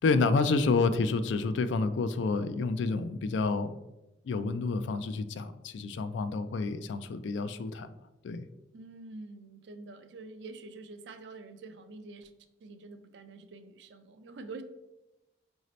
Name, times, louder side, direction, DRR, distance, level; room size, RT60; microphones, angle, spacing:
voice 1, 0.0-3.8 4.2-7.9 8.2-8.5, left 3 dB, 75° left, 11 dB, 0.3 m, -29 dB
voice 2, 8.7-12.3 12.6-14.6, right 3 dB, 70° right, 9 dB, 0.4 m, -46 dB
4.9 x 2.7 x 3.1 m, 0.97 s
head